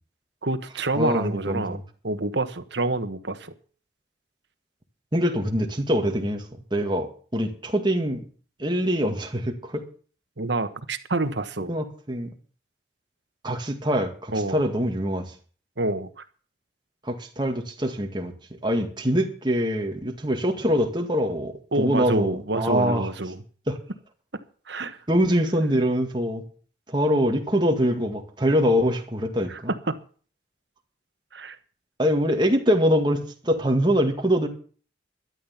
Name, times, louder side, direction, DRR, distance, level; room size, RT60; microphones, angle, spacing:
voice 1, 0.4-1.8 2.0-3.5 10.4-11.7 14.3-14.6 15.8-16.1 21.7-23.4 24.7-25.0 29.5-29.6 29.9-30.0 31.3-31.6, right 2 dB, 65° right, 9 dB, 1.3 m, -27 dB
voice 2, 1.0-1.8 5.1-6.4 6.7-8.2 8.6-9.9 11.7-12.3 13.4-15.3 17.0-18.3 18.6-23.1 23.7-23.8 25.1-26.4 26.9-29.7 32.0-34.5, equal, 25° right, 4 dB, 1.9 m, -24 dB
12.5 x 11.5 x 5.8 m, 0.41 s
head